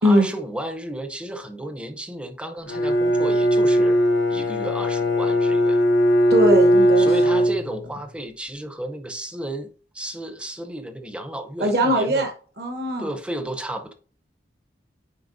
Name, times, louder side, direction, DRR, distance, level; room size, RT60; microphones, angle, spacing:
voice 1, 0.0-4.0 4.3-5.8 7.0-9.7 9.9-12.3 13.0-13.9, right 1 dB, 5° right, 0.6 m, -33 dB
Bowed string instrument, 2.7-8.1, equal, 85° left, 1.1 m, -19 dB
voice 2, 6.3-7.1 11.6-12.3 12.6-13.1, equal, 55° right, 1.1 m, -20 dB
9.6 x 4.5 x 2.6 m
head